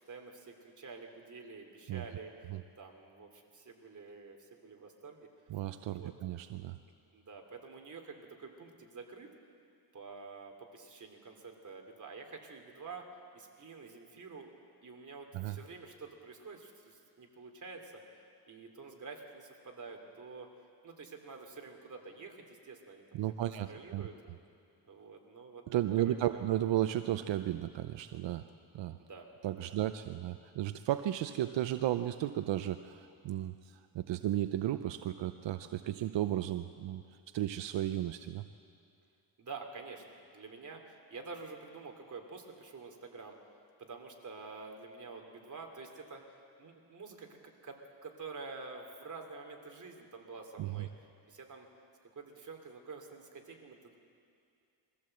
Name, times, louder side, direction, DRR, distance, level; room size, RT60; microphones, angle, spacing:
voice 1, 0.1-2.3 2.8-5.3 5.8-6.1 7.1-9.3 9.9-13.0 13.3-14.5 14.8-18.0 18.5-20.5 20.8-23.3 23.6-24.1 24.9-25.6 26.0-26.4 29.0-29.3 29.6-29.8 39.4-43.3 43.8-46.2 46.6-50.9 51.3-51.7 52.1-54.0, right 4 dB, 45° right, 3 dB, 2.8 m, -48 dB
voice 2, 5.5-6.8 15.3-15.6 23.1-24.0 25.7-28.4 28.7-29.0 29.4-33.5 33.9-37.0 37.3-38.4 50.6-50.9, right 13 dB, 85° right, 10 dB, 0.7 m, -34 dB
22.5 x 15.5 x 7.8 m, 2.4 s
cardioid pair, 110°, 43 cm